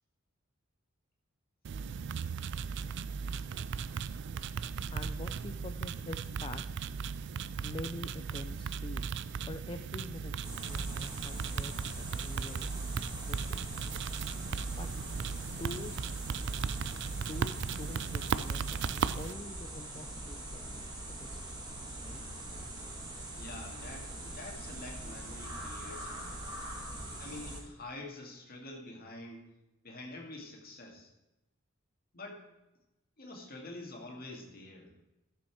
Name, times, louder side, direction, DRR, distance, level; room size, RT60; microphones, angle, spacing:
sound 1, 1.6-19.3, right 6 dB, 55° right, 0.4 m, -37 dB
voice 1, 4.9-6.6 7.6-9.1 9.5-12.7 13.2-13.6 14.8-14.9 15.5-16.0 17.2-18.8 19.1-21.6 22.0-22.2, left 2 dB, 25° left, 7 dB, 0.4 m, -45 dB
sound 2, 10.4-27.6, right 1 dB, 20° right, 2.1 m, -43 dB
voice 2, 23.4-26.3 27.2-29.5 29.8-31.1 32.1-32.4 33.2-34.9, left 2 dB, 45° left, 1 dB, 2.2 m, -46 dB
13.0 x 7.0 x 4.7 m, 0.97 s
head